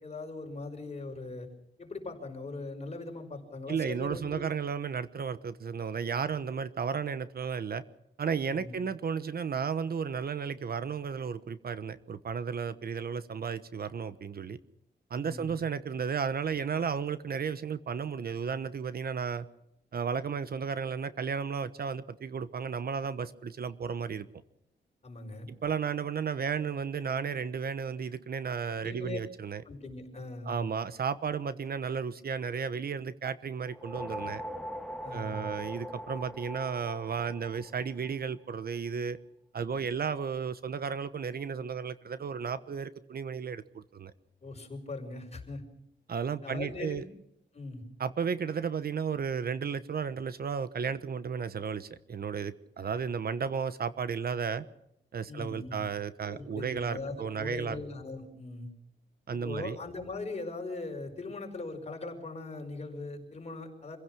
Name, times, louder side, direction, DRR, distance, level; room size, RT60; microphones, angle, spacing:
voice 1, 0.0-1.5 1.8-4.4 8.5-8.8 15.1-15.5 25.0-25.5 28.8-29.2 29.7-30.6 35.0-35.4 44.4-45.6 46.4-47.1 47.5-47.8 55.3-55.8 56.2-58.7 59.3-64.0, left 3 dB, 35° left, 3 dB, 5.6 m, -40 dB
voice 2, 3.7-7.8 8.2-14.6 15.1-19.4 19.9-24.3 25.6-29.6 30.4-34.4 35.1-39.2 39.5-44.1 46.1-47.0 48.0-54.6 55.1-57.8 59.3-59.8, right 6 dB, 55° right, 13 dB, 1.1 m, -33 dB
sound 1, 33.6-38.2, equal, ahead, 1.7 m, -41 dB
27.0 x 16.0 x 6.3 m, 0.79 s
wide cardioid pair, 120°, 18 cm